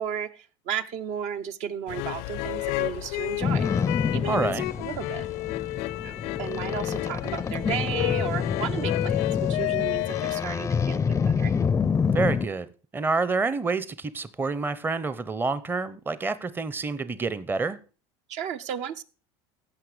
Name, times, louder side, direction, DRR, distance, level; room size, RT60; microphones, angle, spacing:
voice 1, 0.0-4.5 4.8-5.3 6.0-11.6 18.3-19.0, right 8 dB, 55° right, 0.7 m, -34 dB
sound 1, 1.9-10.4, left 19 dB, 70° left, 0.5 m, -31 dB
Boat Water vehicle, 3.4-12.5, left 6 dB, 20° left, 0.5 m, -27 dB
voice 2, 4.3-4.6 12.1-12.7 12.9-17.8, right 4 dB, 15° right, 0.6 m, -28 dB
15.5 x 5.8 x 4.9 m
supercardioid pair, 110°, 14 cm